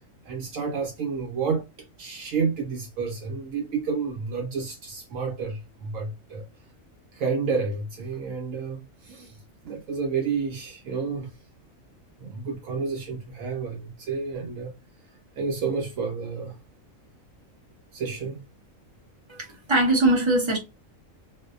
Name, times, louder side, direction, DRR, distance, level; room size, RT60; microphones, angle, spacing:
voice 1, 0.2-1.7 2.0-6.4 7.1-9.4 9.6-11.3 12.2-14.7 15.4-16.5 17.9-18.4, right 5 dB, 80° right, 1.0 m, -30 dB
voice 2, 19.3-20.6, right 2 dB, 35° right, 0.5 m, -21 dB
2.5 x 2.0 x 2.4 m
omnidirectional pair, 1.4 m